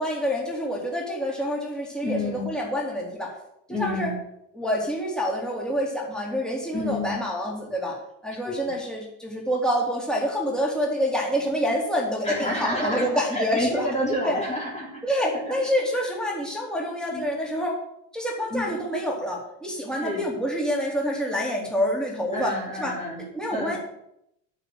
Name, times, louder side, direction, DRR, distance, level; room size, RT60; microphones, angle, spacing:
voice 1, 0.0-3.3 3.7-4.1 4.5-13.9 14.2-14.4 15.0-17.8 18.1-23.8, equal, ahead, -2 dB, 3.8 m, -27 dB
voice 2, 2.0-2.5 3.7-4.2 6.7-7.2 8.5-8.6 12.2-15.5 17.1-17.3 18.5-18.8 20.0-20.3 22.3-23.2 23.5-23.8, left 1 dB, 15° left, -3 dB, 3.4 m, -29 dB
8.9 x 7.3 x 7.9 m, 0.77 s
supercardioid pair, 90°, 39 cm